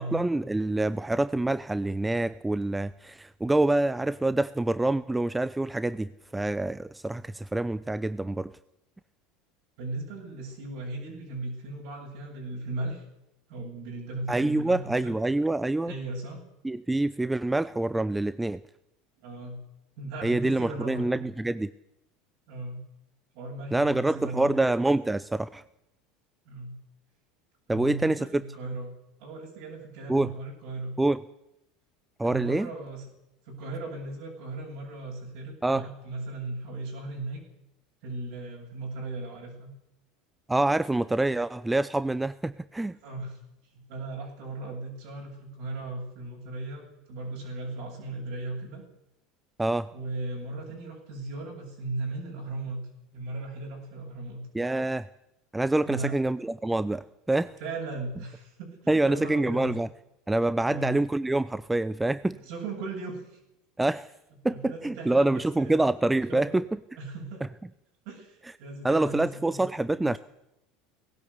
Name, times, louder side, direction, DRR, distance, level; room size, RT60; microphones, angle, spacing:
voice 1, 0.0-8.5 14.3-15.9 16.6-18.6 20.2-21.7 23.7-25.6 27.7-28.4 30.1-30.3 31.0-31.2 32.2-32.7 35.6-35.8 40.5-43.0 49.6-49.9 54.5-55.1 55.5-57.5 58.9-59.9 60.3-62.4 63.8-64.1 64.4-66.6 68.8-70.2, right 2 dB, 10° right, 16 dB, 0.7 m, -26 dB
voice 2, 9.8-13.0 13.5-15.1 15.8-16.4 19.2-19.6 20.0-21.2 22.5-22.8 23.3-24.6 26.5-26.8 27.7-28.9 29.2-30.9 32.2-33.1 33.4-37.4 38.0-39.7 43.0-43.4 43.7-48.8 49.9-52.8 53.1-54.4 55.9-56.2 57.6-59.7 60.7-60.9 62.3-63.4 64.5-65.9 66.3-66.6 67.0-67.4 68.0-70.1, right 2 dB, 60° right, -1 dB, 7.6 m, -37 dB
19.0 x 17.0 x 8.2 m, 0.86 s
hypercardioid pair, 75°, 0 cm